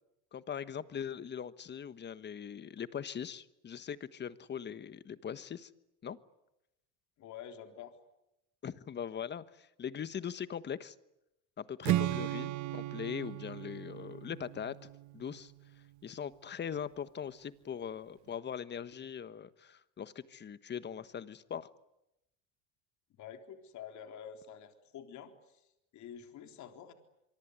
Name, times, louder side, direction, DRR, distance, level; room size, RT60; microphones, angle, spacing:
voice 1, 0.3-5.7 6.0-6.2 8.6-10.9 11.6-14.8 15.1-15.5 16.0-21.7, left 8 dB, 25° left, 14 dB, 1.3 m, -41 dB
voice 2, 7.2-8.0 23.2-26.9, left 8 dB, 45° left, 6 dB, 3.7 m, -48 dB
Strum, 11.8-16.0, right 14 dB, 50° right, 1.2 m, -36 dB
25.5 x 24.0 x 9.7 m, 0.89 s
supercardioid pair, 115°, 39 cm